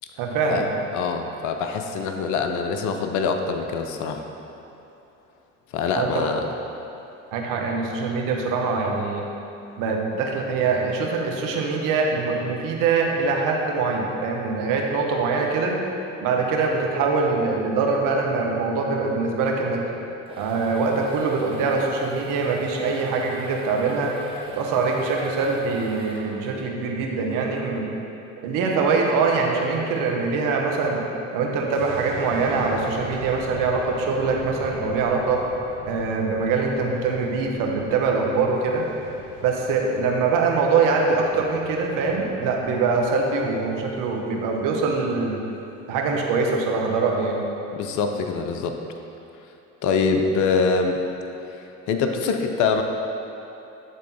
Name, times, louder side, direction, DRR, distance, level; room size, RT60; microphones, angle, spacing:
voice 1, 0.2-0.7 5.9-6.3 7.3-9.2 9.8-15.8 16.2-19.8 20.4-24.1 24.5-27.9 28.4-31.0 31.3-35.4 35.8-38.9 39.4-45.4 45.9-47.4, right 4 dB, 60° right, 0 dB, 1.1 m, -23 dB
voice 2, 0.9-4.2 5.7-6.4 47.7-48.8 49.8-51.0 51.9-52.8, left 5 dB, 55° left, 5 dB, 0.6 m, -24 dB
sound 1, 20.0-26.7, equal, 15° right, 1.3 m, -42 dB
sound 2, 31.7-44.8 45.1-45.3, right 3 dB, 85° right, 1.3 m, -42 dB
9.2 x 3.5 x 4.1 m, 2.9 s
hypercardioid pair, 65°, 37 cm